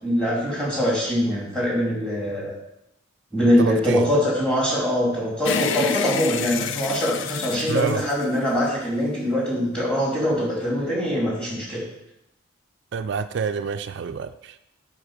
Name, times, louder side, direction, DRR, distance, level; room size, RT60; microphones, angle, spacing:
voice 1, 0.0-2.5 3.3-11.8, equal, 5° left, -4 dB, 2.8 m, -23 dB
voice 2, 3.6-4.1 7.7-8.0 12.9-14.6, right 6 dB, 55° right, 10 dB, 0.4 m, -27 dB
sound 1, 5.4-8.9, left 7 dB, 60° left, 0.4 m, -29 dB
7.5 x 5.4 x 6.5 m, 0.81 s
head